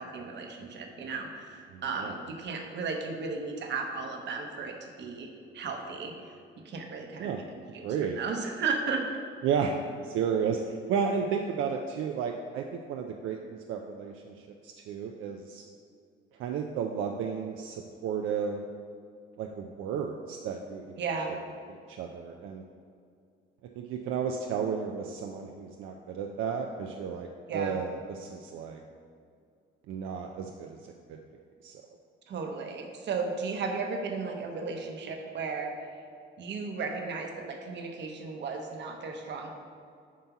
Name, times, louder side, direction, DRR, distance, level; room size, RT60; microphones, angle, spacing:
voice 1, 0.0-5.3 5.5-6.3 6.6-9.0 21.0-21.3 27.5-27.8 32.3-35.7 36.4-39.5, right 4 dB, 65° right, 3 dB, 0.9 m, -35 dB
voice 2, 1.7-2.1 7.2-7.4 7.8-8.2 9.4-9.7 10.0-14.3 14.6-15.6 16.4-18.6 19.4-20.9 21.7-22.6 23.8-28.8 29.9-30.8 31.1-31.2 31.6-31.8, right 6 dB, 85° right, 3 dB, 0.4 m, -33 dB
7.4 x 2.8 x 5.8 m, 2.3 s
cardioid pair, 90°, 20 cm